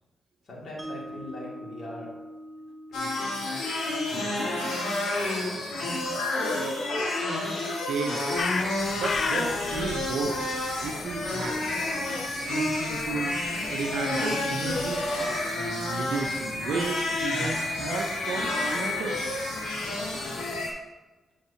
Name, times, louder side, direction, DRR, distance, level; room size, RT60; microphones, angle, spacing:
voice 1, 0.5-2.1 2.9-3.4 4.0-4.7 5.1-6.1, left 1 dB, 65° left, -4 dB, 2.3 m, -42 dB
Mallet percussion, 0.8-6.9, right 1 dB, 20° right, 1.0 m, -45 dB
sound 1, 2.9-20.7, left 2 dB, 85° left, 1.6 m, -30 dB
voice 2, 7.7-8.2 8.9-10.4 10.8-11.6 12.4-13.4 13.7-15.1 15.6-19.2, right 4 dB, 85° right, 7 dB, 0.6 m, -33 dB
sound 2, 8.4-20.7, left 4 dB, 50° left, 0.5 m, -38 dB
8.2 x 6.5 x 2.8 m, 1.2 s
cardioid pair, 70°, 0 cm